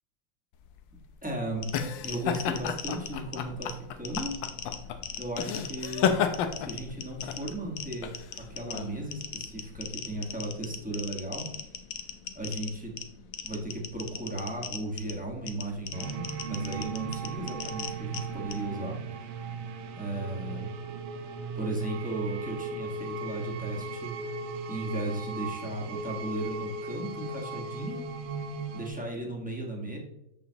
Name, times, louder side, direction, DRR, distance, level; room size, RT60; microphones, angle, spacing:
sound 1, 0.7-9.9, left 7 dB, 80° left, 1.4 m, -32 dB
voice 1, 1.2-1.7 2.0-4.4 5.1-6.2 6.6-8.1 8.5-11.5 12.3-12.9 13.4-19.3 19.9-20.7 21.5-24.4 24.7-28.0 28.7-30.0, right 1 dB, 5° right, -2 dB, 1.2 m, -36 dB
sound 2, 1.6-18.7, left 7 dB, 60° left, 0.9 m, -41 dB
sound 3, 15.9-28.9, right 4 dB, 85° right, 1.5 m, -37 dB
6.9 x 6.8 x 2.9 m, 0.84 s
omnidirectional pair, 2.1 m